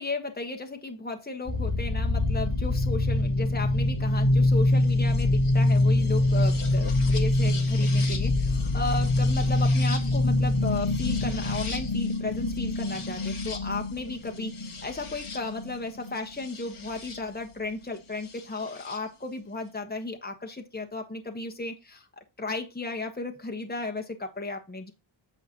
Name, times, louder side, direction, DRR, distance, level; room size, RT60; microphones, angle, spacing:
voice 1, 0.0-24.9, left 3 dB, 20° left, 1.3 m, -34 dB
sound 1, 1.5-17.2 18.4-19.0, left 2 dB, 85° left, 1.7 m, -25 dB
8.9 x 6.8 x 3.0 m
wide cardioid pair, 75°, 50 cm